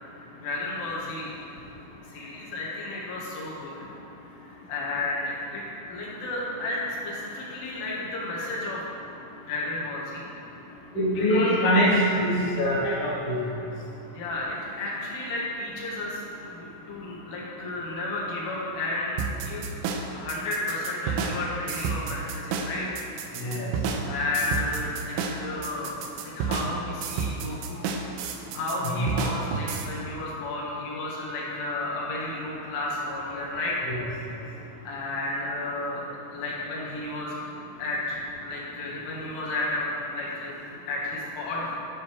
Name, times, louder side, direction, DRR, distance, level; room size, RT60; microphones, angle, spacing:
voice 1, 0.4-1.3 2.1-3.9 4.4-5.6 5.9-8.9 9.5-10.3 11.4-11.5 14.1-19.7 20.2-23.0 24.1-27.9 28.5-33.8 34.9-37.4 37.8-40.6 40.9-41.7, left 2 dB, 70° left, -5 dB, 4.1 m, -32 dB
voice 2, 10.9-11.9 12.2-13.3 23.3-23.7 28.8-29.1 33.8-34.0, equal, 40° left, -8 dB, 1.5 m, -24 dB
sound 1, 19.2-29.9, right 5 dB, 80° right, 2.9 m, -31 dB
13.0 x 10.0 x 3.4 m, 2.9 s
omnidirectional pair, 6.0 m